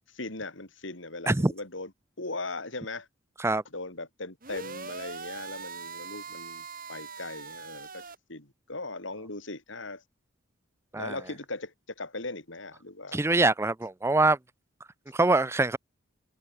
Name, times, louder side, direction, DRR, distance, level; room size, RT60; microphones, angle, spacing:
voice 1, 0.1-1.9 2.2-3.1 3.7-10.0 11.0-13.2, left 2 dB, 65° left, 3.4 m, -39 dB
sound 1, 4.4-8.2, right 5 dB, 45° right, 2.8 m, -41 dB
voice 2, 13.1-14.4 15.1-15.8, right 2 dB, 15° right, 0.4 m, -24 dB
open air
head